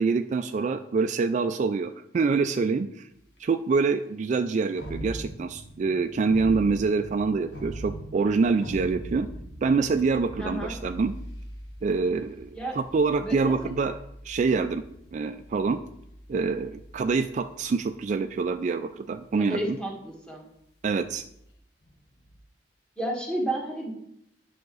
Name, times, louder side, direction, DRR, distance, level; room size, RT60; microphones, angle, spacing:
voice 1, 0.0-3.1 3.4-9.3 9.6-11.1 11.8-14.0 14.2-14.8 15.1-15.8 16.3-19.8 20.8-21.2, right 4 dB, 45° right, 9 dB, 0.3 m, -26 dB
sound 1, 3.1-3.2 4.8-18.5 19.0-19.4 20.8-22.4, right 1 dB, 70° left, 1.4 m, -42 dB
voice 2, 10.4-10.7 12.5-12.8 13.2-13.5 19.4-20.4 23.0-24.0, right 1 dB, 5° left, -1 dB, 1.6 m, -31 dB
9.4 x 5.8 x 3.9 m, 0.77 s
head